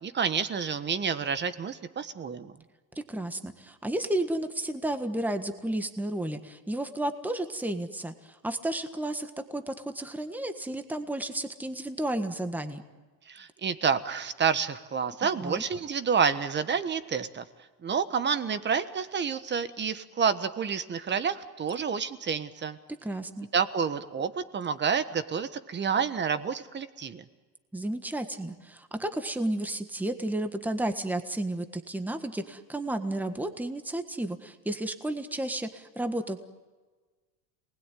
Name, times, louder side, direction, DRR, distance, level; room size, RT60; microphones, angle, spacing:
voice 1, 0.0-2.6 13.3-17.4 17.8-22.8 23.5-27.2, right 6 dB, 25° right, 12 dB, 1.3 m, -29 dB
voice 2, 3.1-12.8 15.4-15.6 23.0-23.5 27.7-36.5, right 1 dB, 5° right, 8 dB, 1.5 m, -32 dB
28.0 x 20.0 x 9.3 m, 1.3 s
supercardioid pair, 135°, 45 cm